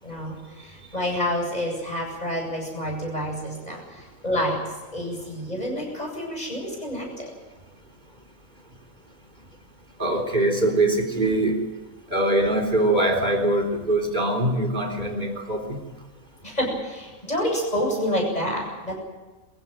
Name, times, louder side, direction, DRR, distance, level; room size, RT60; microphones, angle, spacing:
voice 1, 0.0-4.6 4.9-7.3 16.4-19.0, equal, 25° left, 0 dB, 8.3 m, -28 dB
voice 2, 10.0-11.6 12.1-15.8, right 1 dB, 30° right, 4 dB, 4.0 m, -23 dB
24.5 x 15.5 x 9.2 m, 1.2 s
omnidirectional pair, 1.5 m